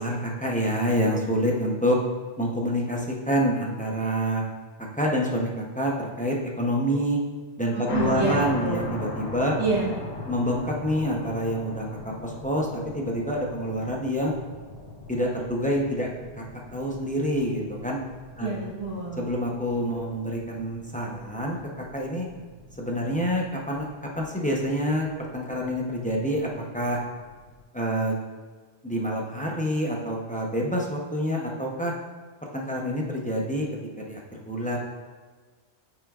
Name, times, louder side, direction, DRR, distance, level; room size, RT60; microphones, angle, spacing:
voice 1, 0.0-2.0 2.4-4.4 4.9-7.2 7.6-9.5 10.3-14.3 15.1-18.0 18.4-18.5 19.2-22.3 22.8-23.9 24.2-27.0 27.7-28.1 28.8-31.9 32.5-33.7 34.0-34.8, equal, 10° left, -2 dB, 0.7 m, -27 dB
voice 2, 7.7-8.8 9.6-10.0 18.4-19.2, right 3 dB, 35° right, -9 dB, 2.4 m, -28 dB
sound 1, 7.9-27.6, left 2 dB, 70° left, 1.2 m, -40 dB
9.0 x 5.9 x 2.4 m, 1.4 s
omnidirectional pair, 1.1 m